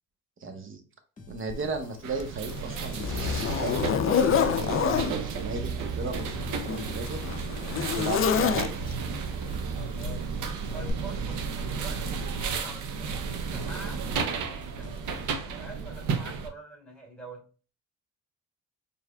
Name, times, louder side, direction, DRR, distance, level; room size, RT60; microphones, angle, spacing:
voice 1, 0.4-0.8 1.3-7.2 7.9-8.8, right 3 dB, 45° right, 6 dB, 1.0 m, -35 dB
sound 1, 1.2-15.7, left 2 dB, 25° left, 1.2 m, -49 dB
Zipper (clothing), 1.5-1.6 2.2-5.1 6.1-9.1 10.0-10.3 10.9-11.0, left 7 dB, 45° left, 0.4 m, -27 dB
sound 2, 2.0-16.5, right 5 dB, 85° right, 0.7 m, -33 dB
voice 2, 9.9-17.5, right 2 dB, 5° left, 0 dB, 2.1 m, -46 dB
4.7 x 3.5 x 2.2 m, 0.36 s
cardioid pair, 90°, 30 cm